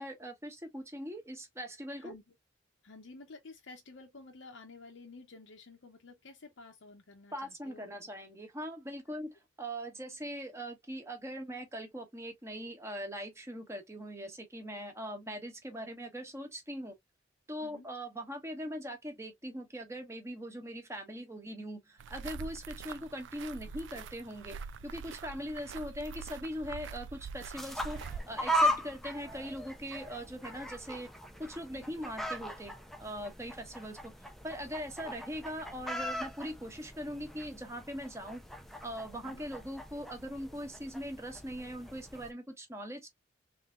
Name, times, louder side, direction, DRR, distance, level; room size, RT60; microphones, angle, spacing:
voice 1, 0.0-2.1 7.3-9.3 9.6-16.9 17.5-24.6 24.8-31.1 31.4-32.7 33.0-34.1 34.4-38.4 38.8-43.1, equal, 15° right, 1.1 m, -41 dB
voice 2, 2.8-7.9 9.1-9.2 17.6-17.9 31.7-31.9 39.1-39.4, left 3 dB, 70° left, 0.8 m, -52 dB
sound 1, 22.0-28.2, right 5 dB, 65° right, 0.4 m, -44 dB
sound 2, 27.5-42.3, equal, ahead, 0.5 m, -38 dB
3.7 x 3.3 x 2.4 m
head